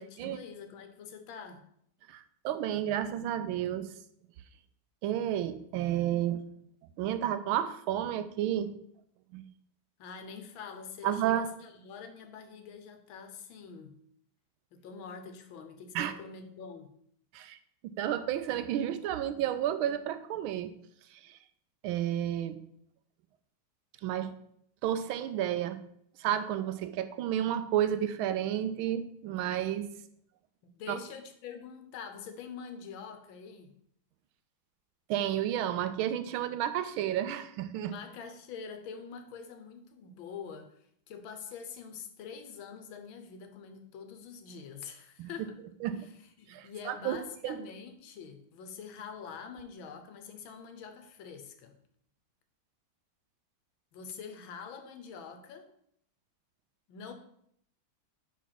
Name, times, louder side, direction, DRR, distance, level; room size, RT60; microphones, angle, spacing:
voice 1, 0.0-1.6 10.0-14.0 14.7-16.9 30.6-33.7 37.8-40.7 41.1-45.6 45.9-51.8 53.9-55.7 56.9-57.1, left 6 dB, 80° left, 7 dB, 1.6 m, -45 dB
voice 2, 2.1-3.9 5.0-6.4 7.0-8.7 9.3-9.4 11.0-11.5 15.9-16.1 17.3-17.6 18.0-20.7 21.1-21.4 21.8-22.6 24.0-24.3 24.8-25.8 26.2-29.9 30.9-31.0 35.1-37.9 45.2-45.3 45.8-46.1 46.5-47.2 47.4-47.6, right 11 dB, 85° right, 11 dB, 1.4 m, -31 dB
4.9 x 4.5 x 5.8 m, 0.69 s
omnidirectional pair, 2.2 m